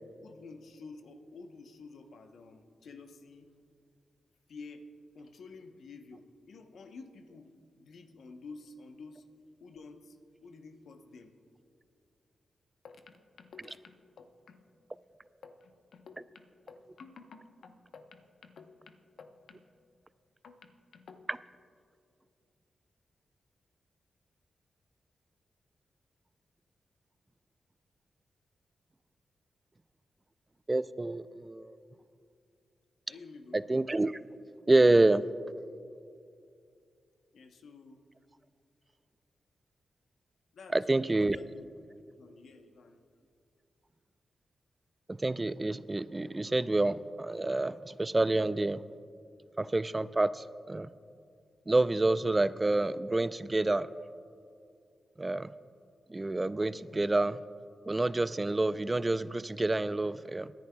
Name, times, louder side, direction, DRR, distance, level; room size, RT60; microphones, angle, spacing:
voice 1, 0.0-3.5 4.5-4.9 5.1-9.2 9.6-11.3 12.8-14.6 15.4-19.6 20.4-21.2 33.1-33.6 37.3-38.0 40.5-43.0, left 4 dB, 75° left, 6 dB, 0.8 m, -51 dB
voice 2, 30.7-31.7 33.5-34.2 34.7-35.2 40.7-41.4 45.1-48.8 49.6-50.9 51.7-53.9 55.2-55.5 56.1-57.4 57.9-60.5, right 2 dB, 30° right, 16 dB, 0.4 m, -28 dB
22.5 x 10.5 x 2.3 m, 2.4 s
supercardioid pair, 45°, 0 cm